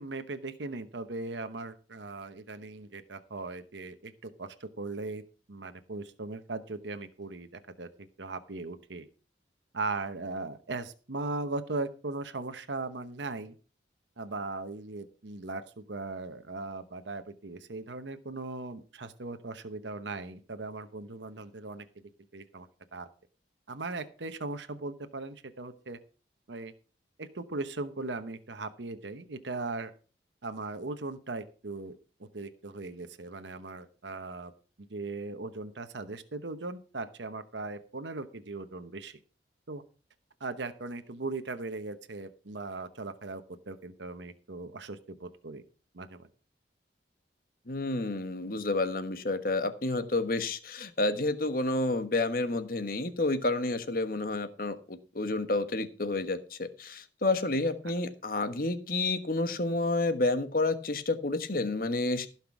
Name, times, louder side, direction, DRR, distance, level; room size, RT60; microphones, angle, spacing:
voice 1, 0.0-5.2 5.5-9.1 9.7-13.5 14.2-21.8 22.3-23.1 23.7-26.0 26.5-26.7 27.2-29.9 30.4-32.0 32.3-34.5 34.9-39.2 39.7-39.8 40.4-45.6 45.9-46.3, right 3 dB, 75° right, 9 dB, 1.0 m, -38 dB
voice 2, 47.7-62.3, left 2 dB, 50° left, 10 dB, 1.3 m, -30 dB
15.5 x 5.9 x 6.0 m, 0.37 s
head